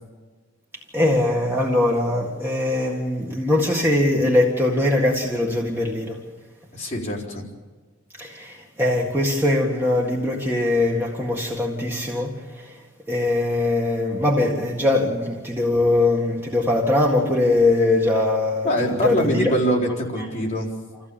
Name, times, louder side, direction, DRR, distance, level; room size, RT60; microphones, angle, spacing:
voice 1, 0.9-6.2 8.1-12.8 13.1-19.5, left 2 dB, 10° right, 1.8 m, -21 dB
voice 2, 6.7-7.4 18.6-20.7, equal, 30° left, 4.2 m, -23 dB
27.5 x 15.5 x 7.2 m
head